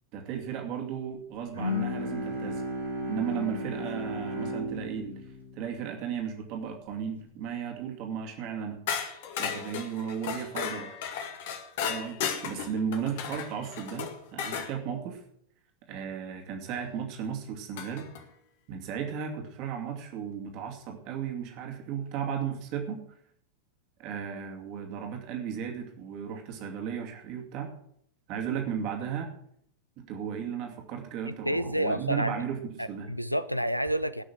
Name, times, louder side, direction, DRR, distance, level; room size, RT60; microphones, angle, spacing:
voice 1, 0.1-2.7 3.1-5.2 5.6-8.8 9.4-10.9 11.9-15.2 15.9-18.1 18.7-23.0 24.0-27.7 28.3-29.3 30.0-33.1, right 7 dB, 40° right, 3 dB, 2.6 m, -35 dB
Bowed string instrument, 1.5-7.0, left 1 dB, 80° right, 4.9 m, -35 dB
sound 1, 8.9-14.7 16.7-16.8 17.8-18.2, left 7 dB, 50° left, 1.9 m, -35 dB
voice 2, 31.2-32.4 32.8-34.2, equal, 90° left, 15 dB, 0.5 m, -29 dB
19.0 x 6.3 x 6.3 m, 0.68 s
figure-of-eight pair, 90°, 0 cm